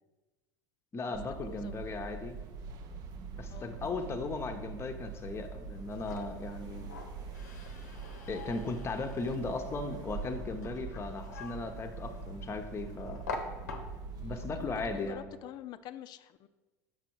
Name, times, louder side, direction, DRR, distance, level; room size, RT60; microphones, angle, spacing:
voice 1, 0.9-2.4 3.4-6.9 8.3-13.2 14.2-15.3, left 3 dB, 30° left, 5 dB, 0.8 m, -37 dB
sound 1, 1.1-15.1, right 4 dB, 50° right, 0.6 m, -43 dB
voice 2, 1.5-2.0 3.5-3.8 9.1-9.3 11.0-11.4 14.1-16.5, left 12 dB, 50° left, 12 dB, 0.4 m, -48 dB
sound 2, 5.7-14.3, left 3 dB, 85° left, 0.8 m, -46 dB
6.1 x 4.7 x 4.6 m, 1.2 s
hypercardioid pair, 80°, 9 cm